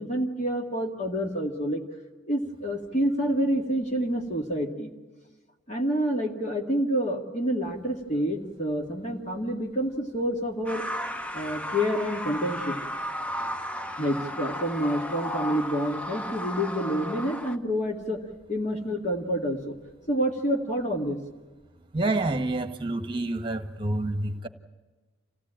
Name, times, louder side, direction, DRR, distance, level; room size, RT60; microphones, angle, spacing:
voice 1, 0.0-1.8 2.3-4.9 5.7-10.9 11.3-12.8 14.0-18.2 18.5-19.7 20.1-21.2, equal, 35° left, 1 dB, 2.0 m, -28 dB
sound 1, 10.7-17.6, equal, 5° left, 0.8 m, -34 dB
voice 2, 21.9-24.5, right 2 dB, 25° right, 8 dB, 1.5 m, -28 dB
27.0 x 17.0 x 8.9 m, 1.3 s
head